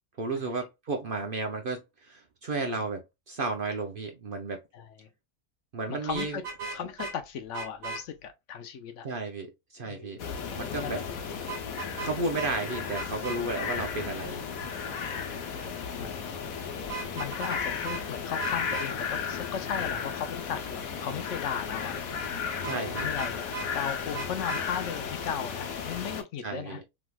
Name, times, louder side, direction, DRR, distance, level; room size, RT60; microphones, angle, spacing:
voice 1, 0.2-3.0 3.3-4.6 5.7-6.8 9.0-11.0 12.0-14.4 22.6-23.1 26.4-26.8, right 3 dB, 55° right, 0.7 m, -33 dB
voice 2, 5.9-6.4 6.7-9.1 9.9-11.5 14.9-15.3 16.0-16.2 17.1-22.0 22.7-23.5 23.7-26.8, left 7 dB, 70° left, 0.9 m, -37 dB
Vehicle horn car horn honking, 6.1-7.1 7.5-8.0 11.5-12.1 12.4-12.5 12.9-13.4 16.8-17.6 17.8-18.0 18.4-18.9 22.6-23.7 24.1-24.6, right 4 dB, 85° right, 1.7 m, -37 dB
sound 1, 10.2-26.2, left 6 dB, 85° left, 1.2 m, -34 dB
3.4 x 3.0 x 2.2 m
omnidirectional pair, 1.4 m